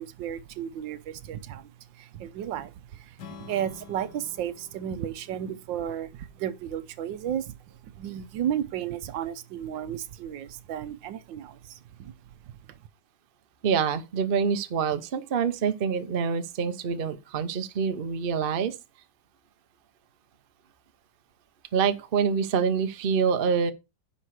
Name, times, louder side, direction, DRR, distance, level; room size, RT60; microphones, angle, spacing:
voice 1, 0.0-12.8, right 10 dB, 75° right, 1.4 m, -34 dB
Strum, 3.2-7.4, left 6 dB, 60° left, 1.7 m, -50 dB
voice 2, 13.6-18.8 21.7-23.7, right 6 dB, 45° right, 0.7 m, -26 dB
10.0 x 5.3 x 4.8 m
omnidirectional pair, 2.1 m